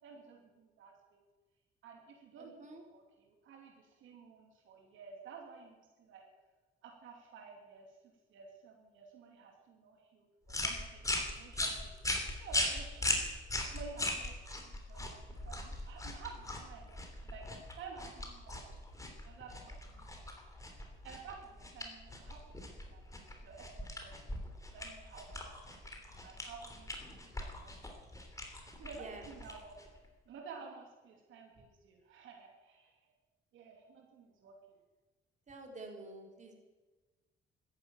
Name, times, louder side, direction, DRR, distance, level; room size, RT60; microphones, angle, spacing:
voice 1, 0.0-1.2 1.8-6.2 6.8-8.0 8.3-11.9 12.4-13.1 13.7-17.5 17.8-18.6 19.2-22.4 22.7-23.1 23.4-24.4 24.7-27.7 28.8-29.8 30.2-33.1 33.5-34.8, right 5 dB, 80° right, 1 dB, 2.8 m, -53 dB
sound 1, 10.5-30.0, left 1 dB, 15° left, 3.4 m, -40 dB
voice 2, 35.5-36.6, right 2 dB, 35° right, 1 dB, 3.7 m, -48 dB
13.5 x 10.5 x 8.9 m, 1.3 s
cardioid pair, 90°, 20 cm